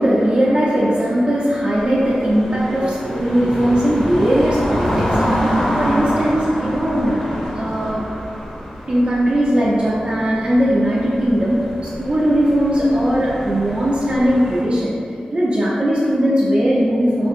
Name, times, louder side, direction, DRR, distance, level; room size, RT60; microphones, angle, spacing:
voice 1, 0.0-8.1 8.9-14.9 15.3-17.3, equal, 40° right, -7 dB, 0.4 m, -18 dB
sound 1, 1.8-14.6, equal, 15° left, 0.8 m, -26 dB
2.9 x 2.5 x 2.5 m, 2.3 s
wide cardioid pair, 70°, 3 cm